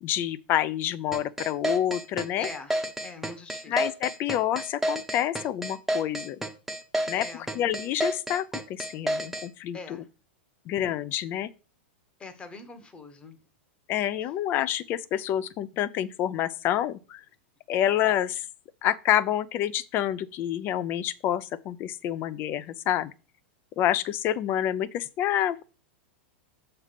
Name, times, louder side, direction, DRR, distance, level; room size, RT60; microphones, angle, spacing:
voice 1, 0.0-2.5 3.7-6.4 7.1-7.3 7.5-9.8 10.7-11.5 13.9-17.2 17.7-18.4 18.8-23.1 23.8-25.6, left 11 dB, 35° left, 0.5 m, -28 dB
sound 1, 1.1-9.5, right 1 dB, 5° right, 0.8 m, -30 dB
voice 2, 2.4-3.9 7.1-7.5 9.7-10.1 12.2-13.4, left 4 dB, 15° left, 1.1 m, -43 dB
7.1 x 3.3 x 5.8 m
supercardioid pair, 135°, 6 cm